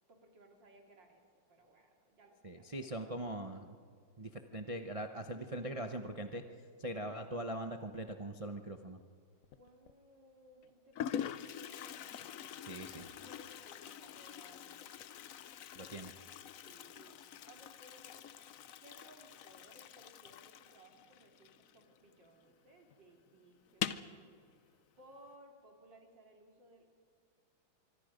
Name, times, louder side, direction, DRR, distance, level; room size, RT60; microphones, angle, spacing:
voice 1, 0.1-3.1 9.5-11.9 12.8-15.1 16.6-17.2 17.5-18.3 18.8-24.2 24.5-26.9, right 1 dB, 65° right, 2 dB, 3.2 m, -61 dB
voice 2, 2.4-3.8 4.2-6.4 6.8-9.0 12.6-13.1 15.8-16.1, right 1 dB, 35° right, 5 dB, 0.5 m, -41 dB
Toilet flush, 9.4-9.9 10.6-10.7 10.9-22.2 22.5-22.6 22.9-23.0 23.7-24.2, left 9 dB, 65° left, 0.8 m, -45 dB
25.0 x 23.5 x 5.2 m, 2.1 s
omnidirectional pair, 2.2 m